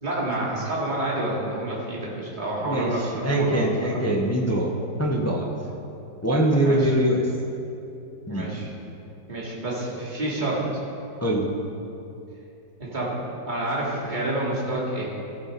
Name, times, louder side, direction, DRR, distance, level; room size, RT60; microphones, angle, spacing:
voice 1, 0.0-3.9 6.6-6.9 8.3-8.7 9.3-10.7 12.8-13.2 13.5-15.1, right 1 dB, 25° right, -5 dB, 2.4 m, -28 dB
voice 2, 2.6-4.7 5.0-5.5 6.2-7.3 8.3-8.5 11.2-11.5, right 1 dB, 15° left, -1 dB, 0.6 m, -23 dB
15.0 x 8.5 x 5.3 m, 2.7 s
omnidirectional pair, 2.0 m